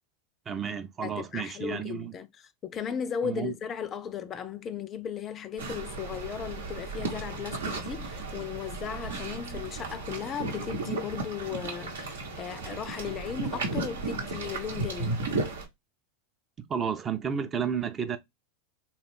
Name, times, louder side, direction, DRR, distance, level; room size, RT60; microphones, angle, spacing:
voice 1, 0.5-2.1 3.2-3.5 16.7-18.2, right 7 dB, 25° right, 0.5 m, -31 dB
voice 2, 1.0-15.2, left 8 dB, 30° left, 0.4 m, -36 dB
sound 1, 5.6-15.7, right 3 dB, 75° right, 0.9 m, -34 dB
3.6 x 2.3 x 3.4 m
figure-of-eight pair, 85°, 0 cm